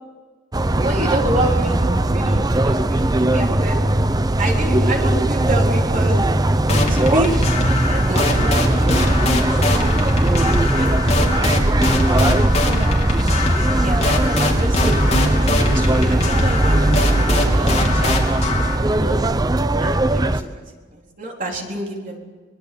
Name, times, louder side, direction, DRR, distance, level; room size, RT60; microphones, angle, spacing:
sound 1, 0.5-20.4, right 1 dB, 20° right, 0.7 m, -19 dB
voice 1, 0.8-3.8 4.4-6.2 6.9-7.4 7.9-9.3 10.6-11.3 11.8-12.3 13.7-19.2 19.8-20.6 20.9-22.2, right 1 dB, 45° right, 1 dB, 4.0 m, -28 dB
sound 2, 6.7-18.8, left 2 dB, 35° left, 3.4 m, -22 dB
24.5 x 21.5 x 6.9 m, 1.4 s
head